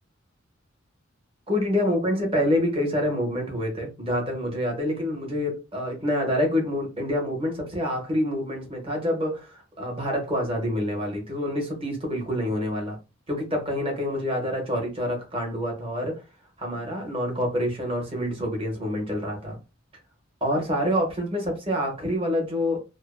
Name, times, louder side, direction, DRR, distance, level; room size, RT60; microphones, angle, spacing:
voice 1, 1.5-13.0 13.3-16.2 16.6-19.6 20.4-22.8, left 1 dB, 30° right, 0.9 m, -27 dB
2.5 x 2.0 x 2.4 m
head